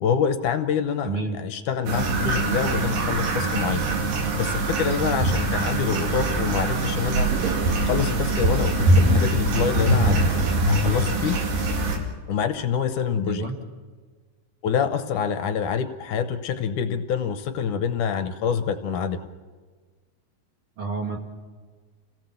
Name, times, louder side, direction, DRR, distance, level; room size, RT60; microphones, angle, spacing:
voice 1, 0.0-3.9 4.4-10.3 10.7-11.4 12.3-13.5 14.6-19.2, left 7 dB, 75° left, 10 dB, 2.2 m, -26 dB
voice 2, 1.0-1.4 13.3-13.5 20.8-21.2, right 4 dB, 45° right, 2 dB, 2.2 m, -29 dB
sound 1, 1.9-12.0, right 2 dB, 80° right, 4.0 m, -23 dB
28.0 x 17.5 x 7.0 m, 1.5 s
omnidirectional pair, 3.9 m